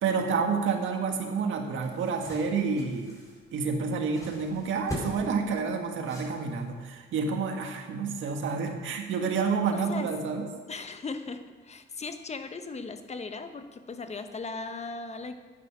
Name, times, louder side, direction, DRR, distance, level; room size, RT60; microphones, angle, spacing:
voice 1, 0.0-3.1 3.5-10.4, right 5 dB, 75° right, 3 dB, 1.8 m, -29 dB
sound 1, 1.4-6.8, equal, 15° left, 4.2 m, -42 dB
voice 2, 9.7-10.1 10.7-15.4, left 4 dB, 35° left, 8 dB, 1.1 m, -38 dB
11.0 x 9.0 x 6.1 m, 1.4 s
cardioid pair, 90°, 20 cm